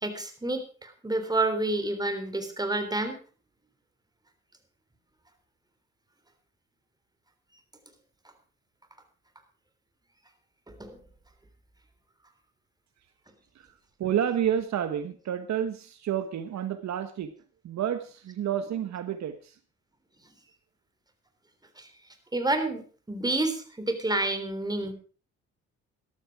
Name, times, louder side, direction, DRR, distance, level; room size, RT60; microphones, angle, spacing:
voice 1, 0.0-3.2 10.8-11.0 21.8-21.9 22.3-22.8 23.1-24.9, right 2 dB, 15° right, 7 dB, 3.4 m, -29 dB
voice 2, 14.0-17.3 17.6-19.4, right 9 dB, 65° right, 10 dB, 1.3 m, -29 dB
13.5 x 12.5 x 4.7 m, 0.39 s
cardioid pair, 90°, 30 cm